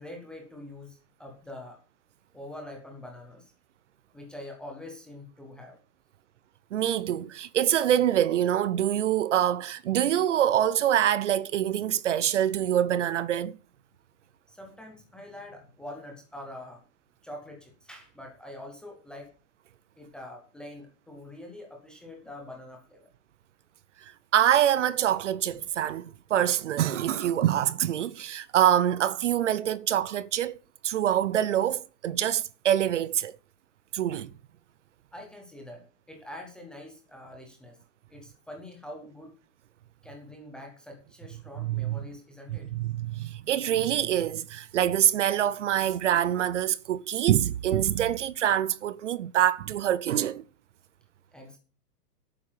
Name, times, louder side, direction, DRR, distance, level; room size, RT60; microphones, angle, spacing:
voice 1, 0.0-1.8 2.3-3.5 4.1-5.8 14.5-16.8 17.2-19.3 20.0-23.1 35.1-37.8 38.1-39.4 40.0-42.7 51.3-51.6, left 1 dB, ahead, 0.5 m, -44 dB
voice 2, 6.7-13.6 24.0-30.6 30.8-33.3 33.9-34.3 41.6-42.0 42.5-50.4, right 11 dB, 50° right, 0.6 m, -25 dB
11.5 x 8.7 x 5.6 m
hypercardioid pair, 160°, 49 cm